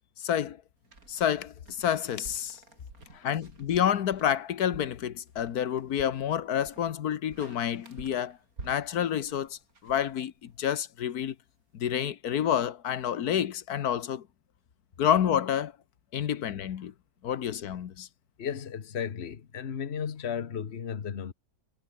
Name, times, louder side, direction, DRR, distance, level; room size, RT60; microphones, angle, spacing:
voice 1, 0.2-0.6 1.1-2.6 3.2-8.4 8.6-9.6 9.8-11.3 11.8-14.2 15.0-15.7 16.1-16.9 17.2-18.1, left 9 dB, 85° left, 1.6 m, -28 dB
sound 1, 0.8-10.7, right 3 dB, 70° right, 4.7 m, -51 dB
voice 2, 18.4-21.3, left 7 dB, 45° left, 1.4 m, -35 dB
omnidirectional pair, 1.6 m